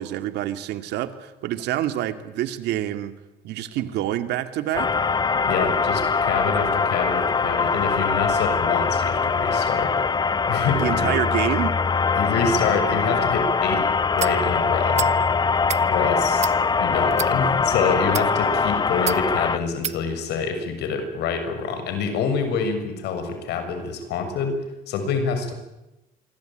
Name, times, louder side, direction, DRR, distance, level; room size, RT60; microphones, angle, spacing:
voice 1, 0.0-3.2 3.4-4.9 10.8-11.8, right 13 dB, 80° right, 10 dB, 2.3 m, -27 dB
sound 1, 4.7-19.6, left 5 dB, 25° left, 1.0 m, -22 dB
voice 2, 5.4-9.9 10.5-11.1 12.2-13.9 14.1-15.1 15.9-16.5 16.8-25.5, left 5 dB, 80° left, 7 dB, 6.8 m, -26 dB
sound 2, 14.2-14.4 14.9-15.1 15.6-15.8 16.4-16.6 17.1-17.3 18.0-18.3 19.1-19.2 19.8-20.0, right 8 dB, 40° right, 1.1 m, -29 dB
27.0 x 23.5 x 9.2 m, 0.95 s
cardioid pair, 110°, 17 cm